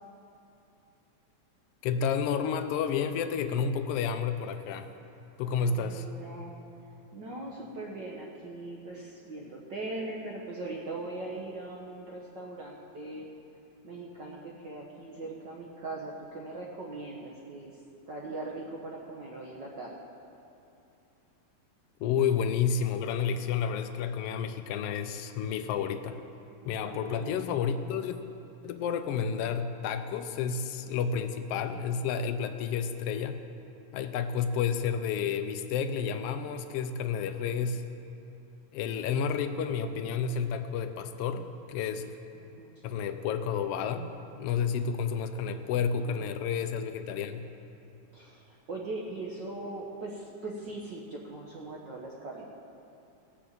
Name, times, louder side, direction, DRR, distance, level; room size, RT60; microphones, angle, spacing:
voice 1, 1.8-4.9 5.4-6.1 22.0-26.2 26.7-28.2 28.6-33.4 33.9-37.8 38.7-42.1 42.8-44.1 44.4-47.4, left 7 dB, 90° left, 8 dB, 1.3 m, -30 dB
voice 2, 5.4-6.5 7.1-13.3 13.8-17.8 18.1-20.0 26.6-27.3 42.3-42.8 45.7-46.3 48.1-52.5, right 2 dB, 60° right, -3 dB, 1.2 m, -40 dB
17.0 x 6.8 x 7.4 m, 2.7 s
omnidirectional pair, 3.4 m